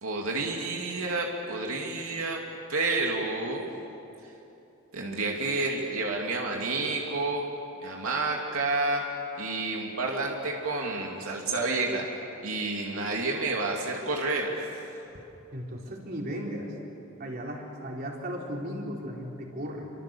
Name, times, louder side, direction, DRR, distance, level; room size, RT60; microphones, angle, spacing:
voice 1, 0.0-2.4 2.7-3.6 4.9-7.4 7.8-9.0 9.3-12.1 12.4-14.6, right 3 dB, 90° right, 0 dB, 2.8 m, -29 dB
voice 2, 15.5-16.7 17.2-19.9, equal, 45° right, -1 dB, 4.2 m, -36 dB
28.5 x 25.5 x 7.1 m, 2.9 s
head